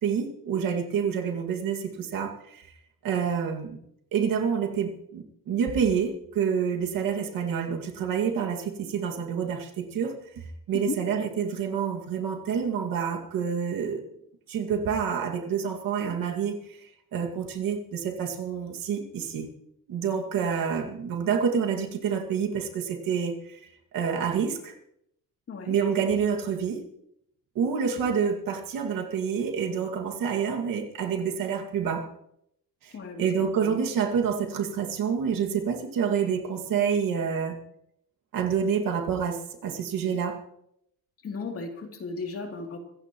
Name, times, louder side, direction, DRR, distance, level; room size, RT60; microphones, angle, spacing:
voice 1, 0.0-2.7 3.0-3.8 4.1-14.0 14.5-16.9 17.1-19.5 19.9-23.6 23.9-24.7 25.6-26.8 27.6-32.1 32.8-32.9 33.2-37.6 38.3-40.4, right 7 dB, 70° right, 2 dB, 2.2 m, -28 dB
voice 2, 41.2-42.8, left 4 dB, 40° left, 2 dB, 2.9 m, -35 dB
25.5 x 15.5 x 3.1 m, 0.77 s
cardioid pair, 160°, 35 cm